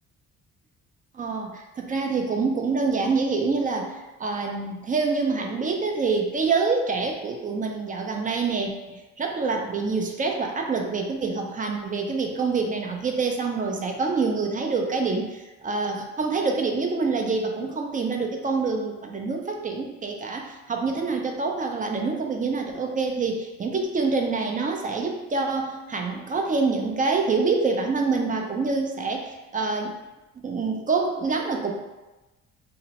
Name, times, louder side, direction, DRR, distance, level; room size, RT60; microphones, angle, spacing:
voice 1, 1.1-30.0 30.4-31.7, right 4 dB, 30° right, 2 dB, 0.3 m, -26 dB
2.7 x 2.0 x 2.8 m, 1.1 s
cardioid pair, 90°, 30 cm